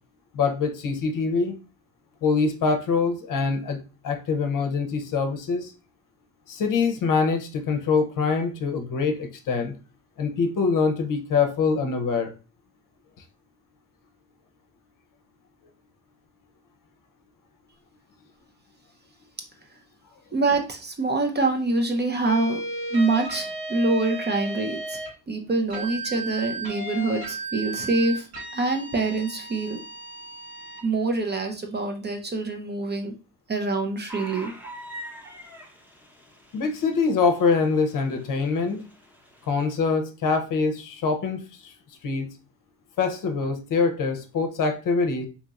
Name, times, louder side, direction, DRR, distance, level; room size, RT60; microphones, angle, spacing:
voice 1, 0.3-1.6 2.2-5.7 6.5-9.8 10.2-12.3 36.5-38.8 39.5-41.7 42.0-42.3 43.0-45.3, left 4 dB, 55° left, 6 dB, 0.7 m, -24 dB
voice 2, 20.3-22.6 22.9-25.0 25.3-28.3 28.5-29.8 30.8-33.1 33.5-34.5, right 3 dB, 25° right, 4 dB, 0.6 m, -25 dB
sound 1, 22.3-25.1 25.7-30.8, right 2 dB, 75° right, 1.5 m, -35 dB
sound 2, 34.1-39.8, right 1 dB, 5° right, 0.9 m, -44 dB
2.9 x 2.8 x 2.4 m, 0.33 s
supercardioid pair, 75°, 39 cm